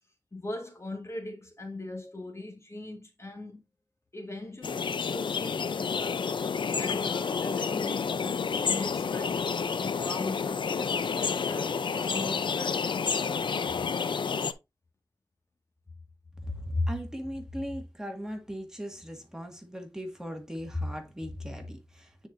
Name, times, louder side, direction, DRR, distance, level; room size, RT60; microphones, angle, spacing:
voice 1, 0.3-3.6 4.1-6.3 6.7-13.6, left 2 dB, 35° left, 1.7 m, -40 dB
sound 1, 4.6-14.5, left 6 dB, 90° left, 0.5 m, -30 dB
voice 2, 16.4-22.3, left 1 dB, 5° right, 1.8 m, -36 dB
9.4 x 4.5 x 2.6 m
wide cardioid pair, 65°, 8 cm